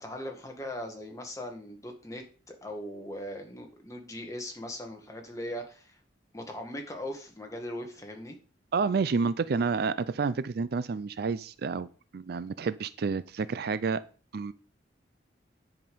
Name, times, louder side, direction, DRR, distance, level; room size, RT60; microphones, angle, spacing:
voice 1, 0.0-6.0 6.3-8.4, left 1 dB, 20° left, 3 dB, 1.8 m, -39 dB
voice 2, 8.7-11.9 12.1-14.0 14.3-14.5, right 5 dB, 60° right, 16 dB, 0.4 m, -29 dB
10.0 x 5.2 x 5.5 m, 0.38 s
head